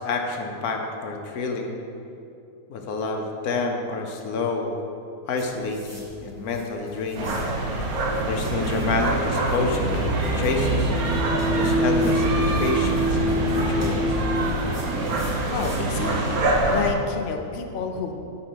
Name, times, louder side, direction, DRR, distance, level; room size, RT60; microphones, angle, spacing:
voice 1, 0.0-1.7 2.7-4.8 5.2-7.4 8.2-10.9 11.5-12.3 12.6-14.2, left 4 dB, 75° left, 3 dB, 1.4 m, -28 dB
sound 1, 5.3-16.0, equal, 10° left, 1.7 m, -47 dB
sound 2, 7.2-16.9, right 2 dB, 75° right, 1.5 m, -25 dB
sound 3, 8.5-14.5, equal, 50° right, 1.1 m, -27 dB
voice 2, 15.5-16.4 16.7-18.1, left 5 dB, 50° left, 4 dB, 0.7 m, -29 dB
8.5 x 5.3 x 6.1 m, 2.6 s
omnidirectional pair, 1.6 m